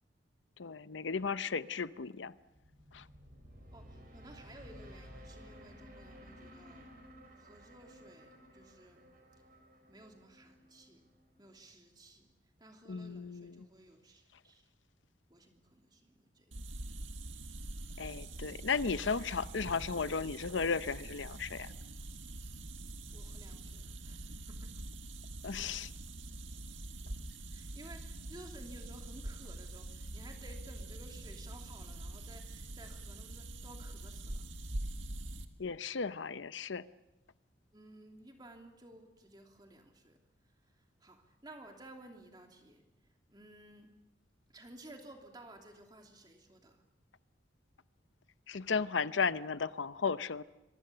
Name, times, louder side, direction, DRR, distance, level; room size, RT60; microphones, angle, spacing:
voice 1, 0.6-2.3 2.9-3.0 12.9-13.7 18.0-21.7 25.4-25.9 35.6-36.9 48.5-50.4, left 5 dB, 80° left, 0.7 m, -35 dB
sound 1, 2.4-11.5, equal, 50° right, 5.2 m, -55 dB
voice 2, 3.7-6.9 7.3-9.0 9.9-11.0 11.4-12.3 12.6-14.7 15.3-16.6 23.1-24.8 27.5-34.4 37.7-40.2 40.7-42.8 43.3-43.9 44.5-46.8, right 1 dB, 20° right, 2.9 m, -55 dB
sound 2, 16.5-35.4, right 2 dB, 85° right, 1.8 m, -44 dB
26.0 x 24.0 x 6.9 m
head